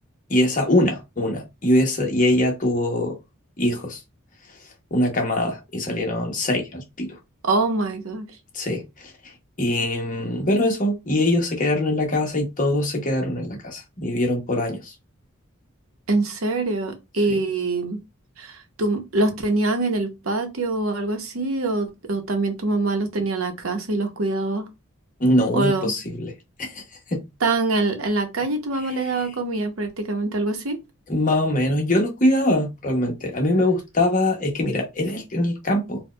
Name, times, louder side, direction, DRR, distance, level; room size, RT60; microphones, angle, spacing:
voice 1, 0.3-3.2 3.6-4.0 4.9-7.1 8.5-9.1 9.6-14.9 17.3-17.4 25.2-26.3 26.6-26.8 27.1-27.2 31.1-36.0, left 1 dB, 40° left, 0.9 m, -22 dB
voice 2, 7.4-8.3 16.1-18.0 18.4-24.7 25.5-25.9 27.4-30.8, right 2 dB, 75° right, 0.8 m, -24 dB
4.3 x 2.2 x 2.2 m
head